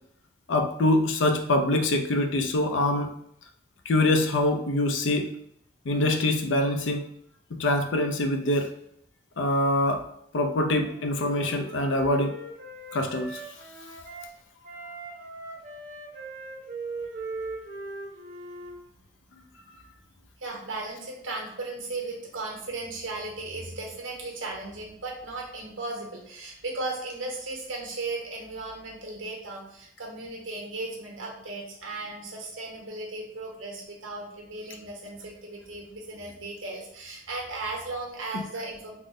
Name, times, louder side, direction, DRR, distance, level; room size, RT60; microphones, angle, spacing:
voice 1, 0.5-3.1 3.9-5.4 5.9-7.1 7.5-8.7 9.4-10.1 10.3-12.3 12.9-13.4, left 1 dB, 80° left, 5 dB, 0.5 m, -24 dB
Wind instrument woodwind instrument, 10.7-14.3 14.6-18.8, right 2 dB, 45° right, 0.8 m, -40 dB
voice 2, 20.4-39.0, right 2 dB, 90° right, -1 dB, 1.1 m, -36 dB
3.6 x 2.1 x 3.6 m, 0.71 s
head